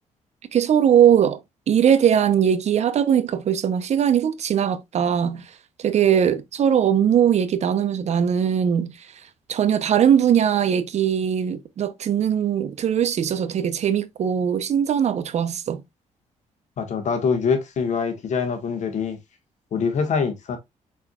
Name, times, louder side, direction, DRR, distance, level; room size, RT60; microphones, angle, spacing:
voice 1, 0.5-1.4 1.7-5.4 5.8-8.9 9.5-15.8, right 9 dB, 55° right, 0.6 m, -20 dB
voice 2, 16.8-19.2 19.7-20.6, left 5 dB, 65° left, 1.4 m, -24 dB
4.6 x 4.4 x 2.3 m
cardioid pair, 90°, 13 cm